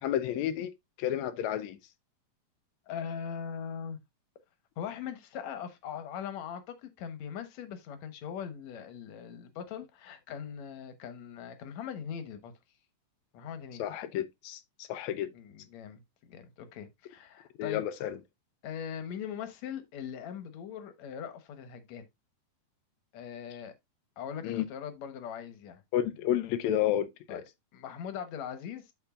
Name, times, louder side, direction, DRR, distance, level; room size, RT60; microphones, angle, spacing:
voice 1, 0.0-0.7 1.0-1.8 13.8-15.3 17.6-18.2 24.4-24.6 25.9-27.4, left 11 dB, 85° left, 1.6 m, -31 dB
voice 2, 2.9-4.0 4.8-12.5 13.3-13.8 15.3-16.0 16.3-17.9 18.6-22.1 23.1-23.7 24.2-25.8 27.3-27.4 27.7-28.9, left 8 dB, 65° left, 2.1 m, -40 dB
12.5 x 4.4 x 2.4 m
omnidirectional pair, 4.1 m